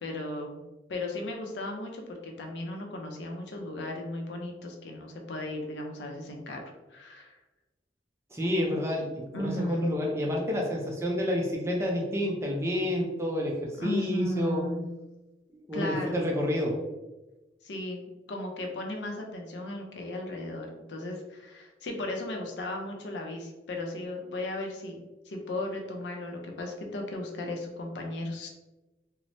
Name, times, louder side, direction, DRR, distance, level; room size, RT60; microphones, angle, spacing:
voice 1, 0.0-0.6 0.9-6.6 6.9-7.4 9.3-9.9 13.8-14.9 15.7-16.2 17.6-18.0 18.3-28.5, left 1 dB, 80° left, 2 dB, 0.5 m, -35 dB
voice 2, 8.3-14.6 15.5-16.7, left 1 dB, 15° right, -1 dB, 0.4 m, -29 dB
3.1 x 2.0 x 2.6 m, 1.1 s
head